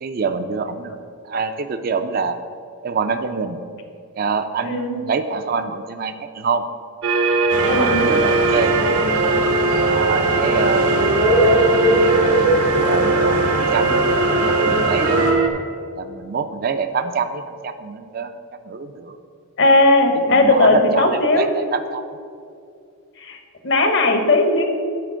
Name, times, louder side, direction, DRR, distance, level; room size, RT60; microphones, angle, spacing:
voice 1, 0.0-1.0 1.3-2.4 2.8-3.6 4.2-6.6 7.7-8.7 9.8-12.4 12.8-13.9 14.2-15.4 16.0-18.3 18.6-19.2 20.3-22.0, right 5 dB, 40° right, 9 dB, 0.3 m, -26 dB
voice 2, 4.7-5.0 7.7-8.1 19.6-21.5 23.2-23.4 23.6-24.6, left 2 dB, 55° left, 6 dB, 0.8 m, -17 dB
sound 1, 7.0-15.5, right 3 dB, 65° right, 0.7 m, -20 dB
sound 2, 7.5-15.3, right 1 dB, 90° right, 1.2 m, -21 dB
7.7 x 4.4 x 6.1 m, 2.4 s
head